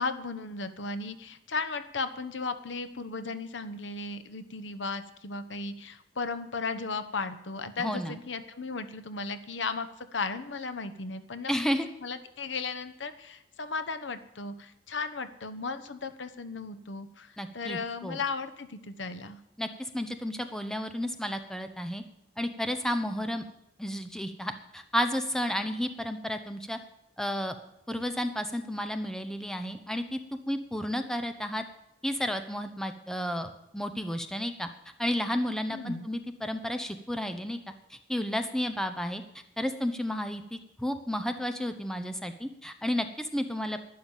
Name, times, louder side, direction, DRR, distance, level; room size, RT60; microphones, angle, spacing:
voice 1, 0.0-11.5 12.0-19.4 35.7-36.1, left 4 dB, 80° left, 10 dB, 1.0 m, -35 dB
voice 2, 7.8-8.2 11.5-11.9 17.4-18.2 19.6-22.0 22.4-23.4 23.8-26.8 27.2-27.5 27.9-30.2 30.5-31.6 32.0-34.7 35.0-37.6 37.9-39.2 39.6-43.8, equal, 5° left, 8 dB, 0.9 m, -32 dB
11.5 x 10.5 x 7.3 m, 0.84 s
head